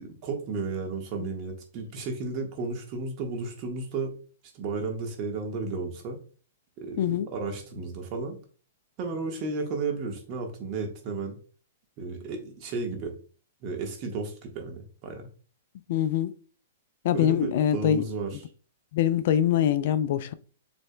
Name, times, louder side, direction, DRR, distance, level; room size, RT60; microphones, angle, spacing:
voice 1, 0.0-4.2 4.5-6.2 6.8-7.0 7.3-8.4 9.0-11.4 12.0-13.1 13.6-15.3 17.1-18.4, right 4 dB, 40° right, 1.4 m, -33 dB
voice 2, 7.0-7.3 15.9-16.3 17.0-18.0 18.9-20.3, left 10 dB, 55° left, 0.4 m, -24 dB
6.7 x 3.4 x 2.2 m
hypercardioid pair, 130°, 0 cm